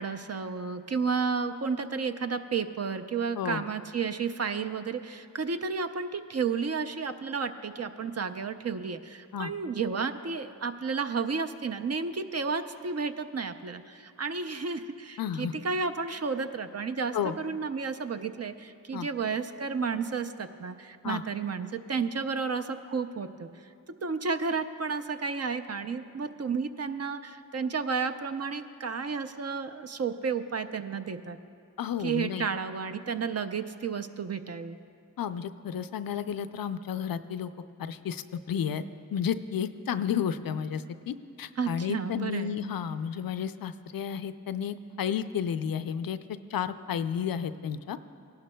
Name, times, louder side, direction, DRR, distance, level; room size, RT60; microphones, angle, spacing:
voice 1, 0.0-23.5 24.0-31.4 32.0-34.8 41.6-42.5, right 5 dB, 45° right, 8 dB, 0.6 m, -32 dB
voice 2, 15.2-15.5 17.1-17.4 18.9-19.1 21.0-21.2 31.8-32.5 35.2-37.5 37.8-38.8 39.1-46.2 46.5-48.0, left 8 dB, 80° left, 11 dB, 0.5 m, -32 dB
17.5 x 11.5 x 2.2 m, 2.4 s
cardioid pair, 40°, 35 cm